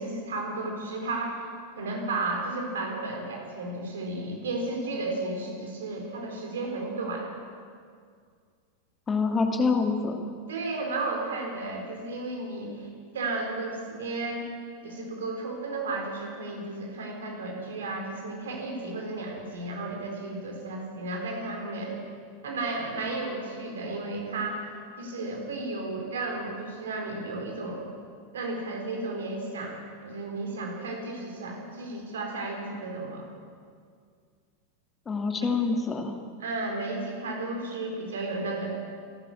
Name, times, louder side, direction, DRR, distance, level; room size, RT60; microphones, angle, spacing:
voice 1, 0.0-1.5 1.8-7.4 10.5-12.9 13.1-14.5 14.8-22.0 22.4-24.7 25.0-27.9 28.3-33.3 36.4-38.7, right 2 dB, 65° right, 2 dB, 4.3 m, -33 dB
voice 2, 9.1-10.2 35.1-36.2, left 4 dB, 20° left, 4 dB, 2.5 m, -26 dB
27.5 x 12.5 x 7.3 m, 2.1 s
figure-of-eight pair, 90°, 0 cm